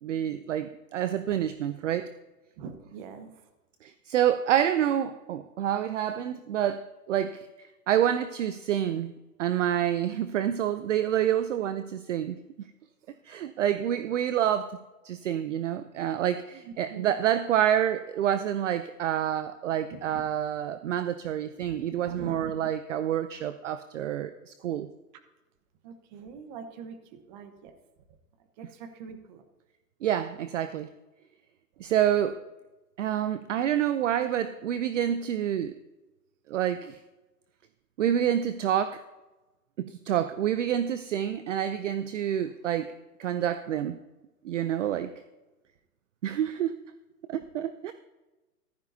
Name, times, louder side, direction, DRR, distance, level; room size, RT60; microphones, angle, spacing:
voice 1, 0.0-2.1 3.8-7.5 7.9-9.1 9.4-12.4 13.2-14.8 15.0-24.9 30.0-30.9 31.8-32.4 33.0-35.7 36.5-37.0 38.0-39.0 39.8-42.9 43.2-44.0 44.4-45.1 46.2-46.8 47.3-47.9, right 10 dB, 50° right, 12 dB, 0.6 m, -28 dB
voice 2, 2.6-3.3 16.9-17.1 19.9-20.2 21.6-21.8 22.0-22.7 25.8-27.8 28.6-29.4, right 6 dB, 30° right, 8 dB, 1.1 m, -43 dB
14.5 x 12.0 x 2.7 m, 1.1 s
hypercardioid pair, 145°, 47 cm